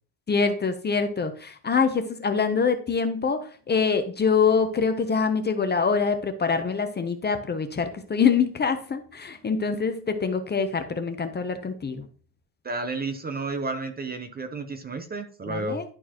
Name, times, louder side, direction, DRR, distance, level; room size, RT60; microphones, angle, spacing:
voice 1, 0.3-12.0 15.5-15.8, left 5 dB, 25° left, 8 dB, 0.7 m, -25 dB
voice 2, 12.6-15.8, right 3 dB, 20° right, 8 dB, 0.6 m, -31 dB
11.0 x 4.5 x 2.9 m, 0.41 s
cardioid pair, 145°, 45 cm